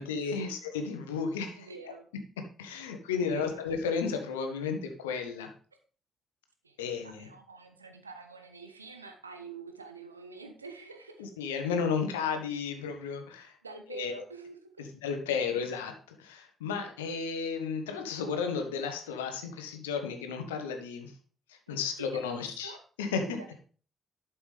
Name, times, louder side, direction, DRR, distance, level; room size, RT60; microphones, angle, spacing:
voice 1, 0.0-1.7 2.6-5.5 6.8-7.3 11.2-13.5 13.9-14.1 14.8-21.1 21.5-23.3, left 5 dB, 75° left, 6 dB, 1.1 m, -33 dB
voice 2, 1.5-2.1 3.2-3.6 6.6-11.3 13.6-14.9 16.8-16.9 21.7-22.8 23.4-23.5, right 4 dB, 85° right, 6 dB, 0.9 m, -47 dB
11.5 x 6.1 x 3.4 m, 0.40 s
figure-of-eight pair, 45°, 0 cm